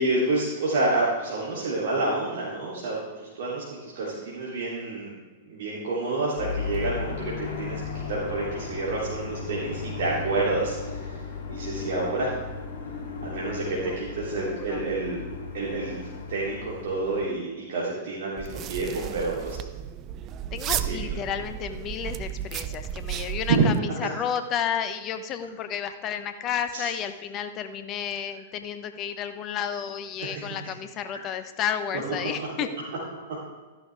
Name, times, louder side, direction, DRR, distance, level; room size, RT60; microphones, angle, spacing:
voice 1, 0.0-5.1 5.5-7.8 8.1-11.0 11.5-12.3 13.2-15.2 15.5-19.6 20.7-21.2 23.5-23.7 26.7-26.9 32.4-32.5 33.3-33.4, right 3 dB, 65° right, -6 dB, 3.2 m, -28 dB
sound 1, 6.4-17.3, left 5 dB, 60° left, 3.0 m, -35 dB
voice 2, 13.6-14.8 20.5-32.7, left 8 dB, 35° left, 9 dB, 1.0 m, -32 dB
sound 2, 18.4-23.8, right 10 dB, 35° right, 0.5 m, -33 dB
13.5 x 11.0 x 3.5 m, 1.3 s
hypercardioid pair, 105°, 0 cm